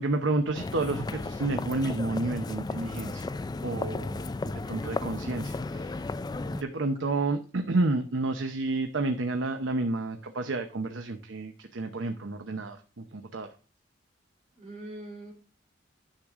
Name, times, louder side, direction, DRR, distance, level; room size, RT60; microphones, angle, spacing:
voice 1, 0.0-3.3 3.6-6.1 6.5-13.5, right 2 dB, 80° right, 6 dB, 0.8 m, -30 dB
sound 1, 0.5-6.6, left 3 dB, 20° left, 0.3 m, -34 dB
voice 2, 14.5-15.3, right 1 dB, 35° right, 0 dB, 3.7 m, -43 dB
10.5 x 6.5 x 3.6 m, 0.37 s
head